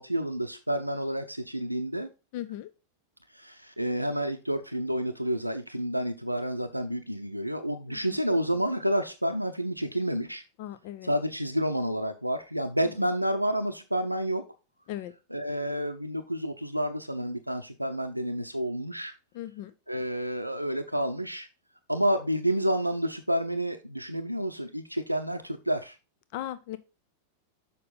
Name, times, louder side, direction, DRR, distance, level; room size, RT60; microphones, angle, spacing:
voice 1, 0.0-2.1 3.3-10.4 11.0-14.4 15.3-19.1 19.9-21.5 21.9-26.0, equal, 90° right, 7 dB, 0.5 m, -29 dB
voice 2, 2.3-2.7 7.9-8.0 10.6-11.1 14.9-15.1 19.3-19.7 26.3-26.8, left 13 dB, 50° left, 13 dB, 0.5 m, -37 dB
6.7 x 5.4 x 3.9 m, 0.29 s
figure-of-eight pair, 90°, 0 cm